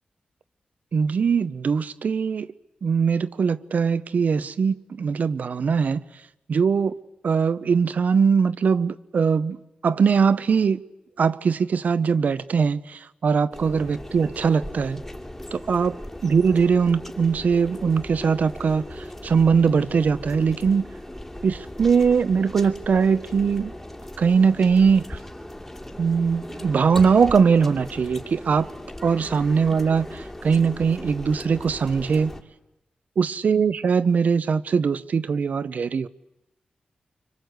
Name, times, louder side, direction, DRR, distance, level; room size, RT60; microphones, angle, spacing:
voice 1, 0.9-2.5 2.8-6.0 6.5-7.0 7.2-10.8 11.2-15.0 15.5-20.8 21.4-23.7 24.2-25.2 26.0-28.7 29.0-32.3 33.2-36.1, right 6 dB, 70° right, 0.9 m, -21 dB
sound 1, 13.5-32.4, left 1 dB, 15° left, 2.6 m, -38 dB
25.5 x 25.0 x 8.0 m
wide cardioid pair, 90°, 3 cm